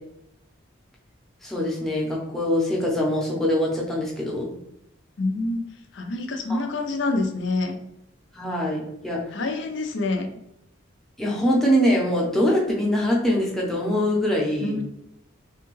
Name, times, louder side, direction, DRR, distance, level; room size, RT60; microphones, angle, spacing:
voice 1, 1.4-4.5 6.5-6.6 8.3-9.2 11.2-14.8, equal, ahead, -4 dB, 0.7 m, -23 dB
voice 2, 5.2-5.7 5.9-7.8 9.3-10.3 14.6-14.8, left 2 dB, 65° left, 5 dB, 0.5 m, -26 dB
3.4 x 2.2 x 3.1 m, 0.82 s
head